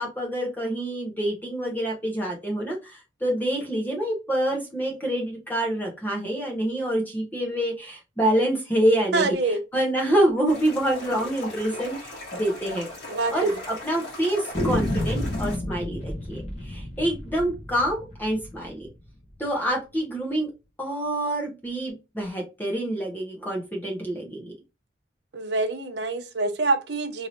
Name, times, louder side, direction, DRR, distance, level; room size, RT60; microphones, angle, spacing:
voice 1, 0.0-9.4 9.7-12.9 13.3-18.9 19.4-20.5 20.8-24.5, right 1 dB, 10° left, 0.7 m, -26 dB
voice 2, 9.1-9.6 13.1-13.5 25.3-27.3, right 3 dB, 60° right, 0.6 m, -25 dB
sound 1, 10.5-15.6, left 1 dB, 60° left, 1.6 m, -38 dB
sound 2, 11.7-11.9 12.2-12.3 12.6-12.7 13.3-13.8 14.5-19.3, left 1 dB, 30° left, 0.9 m, -31 dB
3.1 x 2.7 x 2.5 m
head